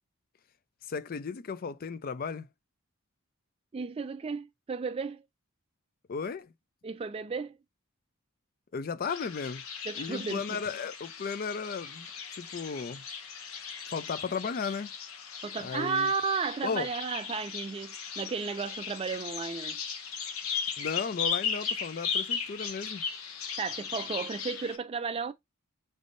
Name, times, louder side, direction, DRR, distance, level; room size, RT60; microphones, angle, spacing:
voice 1, 0.9-2.5 6.1-6.5 8.7-9.6 10.0-13.0 13.9-14.9 15.6-16.1 16.6-16.9 20.8-23.0, left 5 dB, 40° left, 0.4 m, -35 dB
voice 2, 3.7-5.2 6.8-7.6 9.9-10.6 15.4-19.8 23.6-25.3, right 5 dB, 25° right, 0.3 m, -33 dB
sound 1, 9.1-24.8, left 7 dB, 75° left, 0.9 m, -37 dB
5.2 x 3.4 x 2.6 m
head